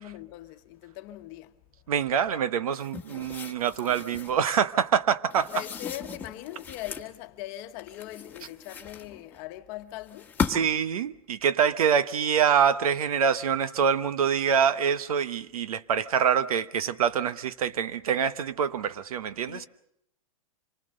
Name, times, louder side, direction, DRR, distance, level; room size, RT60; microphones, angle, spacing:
voice 1, 0.0-1.5 5.5-10.3 19.5-19.7, left 15 dB, 40° left, 1.2 m, -40 dB
voice 2, 1.9-5.5 10.5-19.7, right 7 dB, 80° right, 1.1 m, -25 dB
sound 1, 2.7-4.4 5.3-7.1 7.8-9.4 10.1-10.9, left 6 dB, 10° left, 1.5 m, -36 dB
26.5 x 20.0 x 6.6 m
hypercardioid pair, 145°, 18 cm